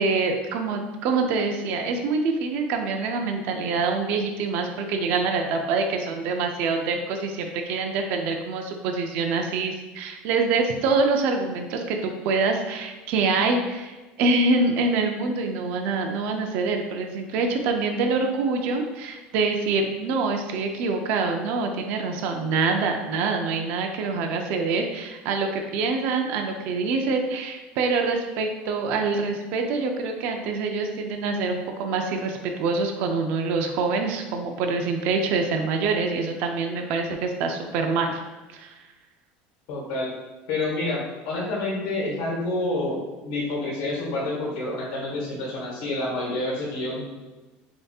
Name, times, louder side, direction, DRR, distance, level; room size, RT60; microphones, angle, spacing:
voice 1, 0.0-38.2 38.5-38.8, right 4 dB, 50° right, 3 dB, 0.5 m, -25 dB
voice 2, 39.7-40.1 40.5-47.1, left 2 dB, 70° left, -5 dB, 1.4 m, -28 dB
6.8 x 2.7 x 2.3 m, 1.2 s
cardioid pair, 180°, 4 cm